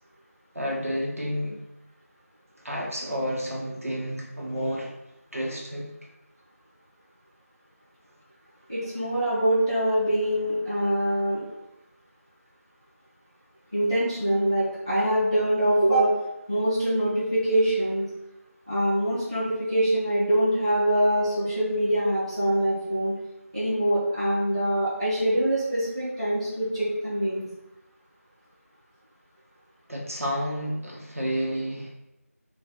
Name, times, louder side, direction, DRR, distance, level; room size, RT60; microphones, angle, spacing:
voice 1, 0.5-1.5 2.6-4.9 5.3-5.9 29.9-31.9, equal, 65° right, -3 dB, 1.2 m, -30 dB
voice 2, 8.7-11.4 13.7-16.1 16.5-18.1 18.7-23.1 23.5-27.4, right 1 dB, 20° right, -12 dB, 1.1 m, -24 dB
4.2 x 2.6 x 4.0 m, 0.91 s
figure-of-eight pair, 180°, 8 cm